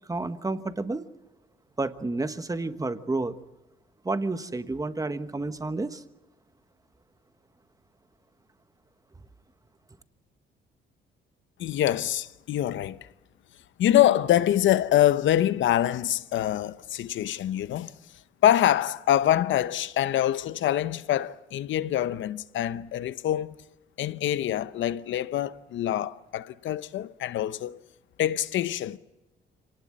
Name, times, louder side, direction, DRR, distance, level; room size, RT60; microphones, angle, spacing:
voice 1, 0.1-1.1 1.8-3.3 4.0-6.0, right 2 dB, 15° right, 1.3 m, -30 dB
voice 2, 11.6-13.1 13.8-17.9 18.4-23.6 24.0-27.8 28.2-29.0, left 12 dB, 75° left, 0.8 m, -25 dB
25.5 x 18.5 x 7.6 m
cardioid pair, 90°, 20 cm